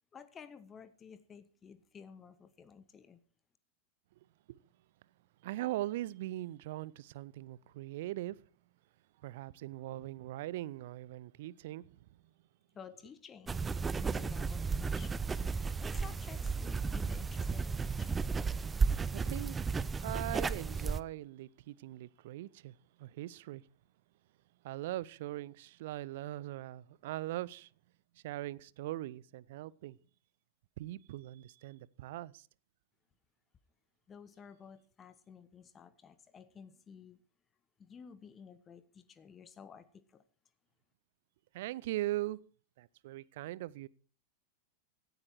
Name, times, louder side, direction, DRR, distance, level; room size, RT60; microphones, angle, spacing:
voice 1, 0.1-3.2 12.7-18.2 34.1-37.2 37.8-39.8 40.1-40.2, left 6 dB, 20° left, 1.1 m, -53 dB
voice 2, 5.4-8.4 9.2-12.0 19.1-19.6 20.0-23.6 24.6-27.7 28.2-30.0 30.8-32.5 41.5-42.4 42.8-43.9, right 16 dB, 55° right, 0.6 m, -40 dB
sound 1, 13.5-21.0, right 4 dB, 15° right, 0.6 m, -34 dB
17.0 x 13.0 x 4.5 m
figure-of-eight pair, 90°, 0 cm